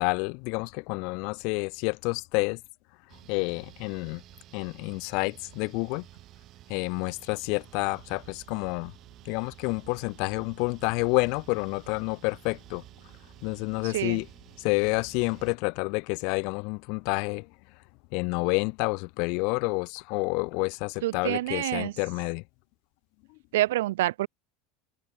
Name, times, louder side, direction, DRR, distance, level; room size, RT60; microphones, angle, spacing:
voice 1, 0.0-2.6 3.3-4.2 4.5-6.1 6.7-8.9 9.2-12.8 13.4-14.3 14.6-17.5 18.1-22.4 23.3-23.4, left 32 dB, 60° left, 0.8 m, -29 dB
sound 1, 3.1-15.6, right 14 dB, 50° right, 1.7 m, -51 dB
voice 2, 13.8-14.2 21.0-21.9 23.5-24.3, right 16 dB, 75° right, 0.4 m, -27 dB
hypercardioid pair, 80°, 0 cm